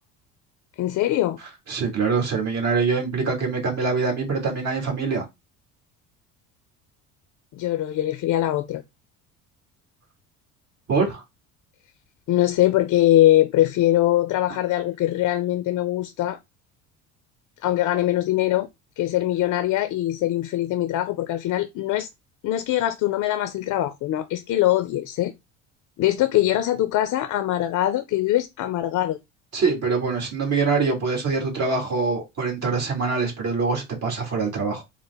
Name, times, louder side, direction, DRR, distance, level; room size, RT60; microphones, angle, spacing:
voice 1, 0.8-1.4 7.5-8.8 12.3-16.4 17.6-18.7 19.0-22.1 22.4-25.3 26.0-29.2, left 14 dB, 50° left, 0.5 m, -22 dB
voice 2, 1.7-5.3 10.9-11.2 29.5-34.8, right 4 dB, 45° right, 1.8 m, -24 dB
3.7 x 2.1 x 3.4 m
supercardioid pair, 85°, 36 cm